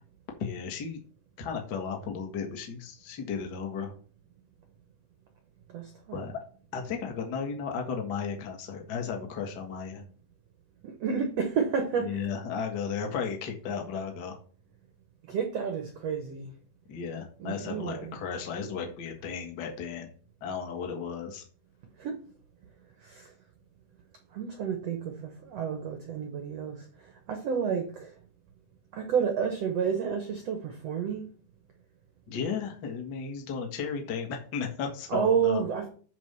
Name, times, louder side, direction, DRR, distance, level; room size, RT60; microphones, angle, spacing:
voice 1, 0.4-1.0 1.4-3.9 6.1-6.4 6.7-10.0 12.0-14.4 16.9-20.1 20.4-21.4 32.3-35.6, left 6 dB, 70° left, 0.9 m, -34 dB
voice 2, 5.7-6.2 10.8-12.2 15.2-16.5 17.4-18.2 22.0-22.1 23.0-23.3 24.3-26.8 27.3-28.1 28.9-31.3 35.1-35.9, right 7 dB, 90° right, 1.4 m, -30 dB
10.5 x 3.5 x 6.8 m
omnidirectional pair, 4.7 m